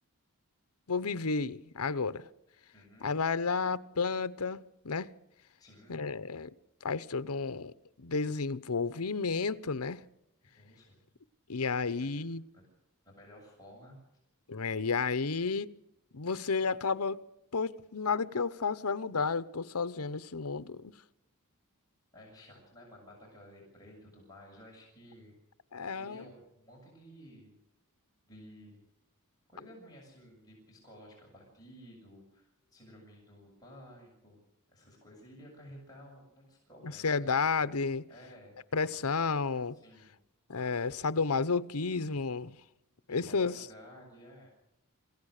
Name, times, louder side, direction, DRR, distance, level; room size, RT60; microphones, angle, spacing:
voice 1, 0.9-2.3 3.0-5.1 5.9-6.5 6.8-7.7 8.0-10.0 11.5-12.4 14.5-15.8 16.1-17.2 17.5-20.9 25.7-26.2 36.8-38.1 38.7-39.8 40.5-42.6 43.1-43.7, left 4 dB, 80° left, 0.9 m, -32 dB
voice 2, 2.7-3.1 5.6-6.0 10.6-11.1 11.8-12.2 12.5-12.6 13.0-14.0 22.1-25.3 25.9-27.5 28.2-28.8 29.5-34.4 34.7-37.3 38.1-38.5 39.7-40.2 43.1-44.5, equal, 15° left, 7.2 m, -54 dB
27.5 x 16.0 x 6.6 m
head